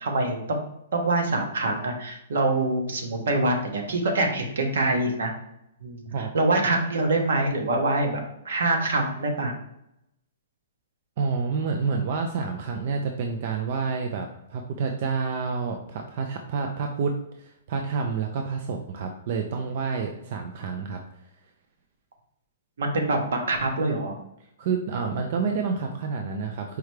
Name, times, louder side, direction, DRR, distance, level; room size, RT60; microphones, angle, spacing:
voice 1, 0.0-0.6 0.9-5.3 5.8-6.0 6.3-9.5 22.8-24.2, right 2 dB, 65° right, 3 dB, 1.0 m, -25 dB
voice 2, 11.2-21.3 24.6-26.8, right 5 dB, 35° right, 4 dB, 0.3 m, -29 dB
4.7 x 3.3 x 3.1 m, 0.81 s
hypercardioid pair, 180°, 0 cm